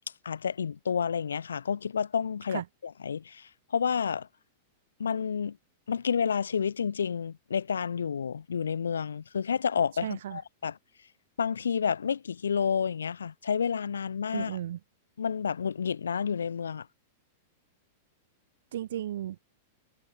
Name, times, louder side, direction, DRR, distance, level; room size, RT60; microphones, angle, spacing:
voice 1, 0.2-2.6 3.0-3.4 3.7-4.3 5.0-5.6 5.9-10.7 11.4-14.5 15.2-16.9, left 7 dB, 70° left, 0.5 m, -30 dB
voice 2, 10.0-10.4 14.3-14.8 18.7-19.4, right 11 dB, 60° right, 1.3 m, -34 dB
figure-of-eight pair, 95°, 0 cm